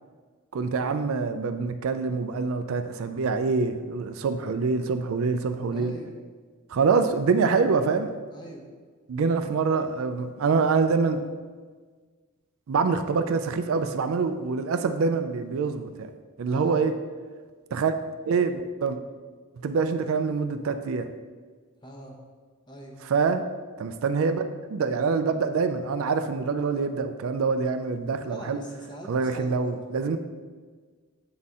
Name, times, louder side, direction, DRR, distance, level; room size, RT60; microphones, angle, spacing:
voice 1, 0.5-5.9 6.7-8.1 9.1-11.2 12.7-16.1 16.4-17.0 17.7-17.9 18.3-19.0 19.6-21.1 23.0-23.4 23.8-24.4 24.7-28.6 29.1-30.2, right 4 dB, 65° right, 9 dB, 0.4 m, -25 dB
voice 2, 5.7-6.1 8.3-8.6 16.5-16.8 21.8-22.2 22.7-23.0 28.2-29.8, equal, 20° left, 0 dB, 0.8 m, -43 dB
7.6 x 4.1 x 3.6 m, 1.5 s
head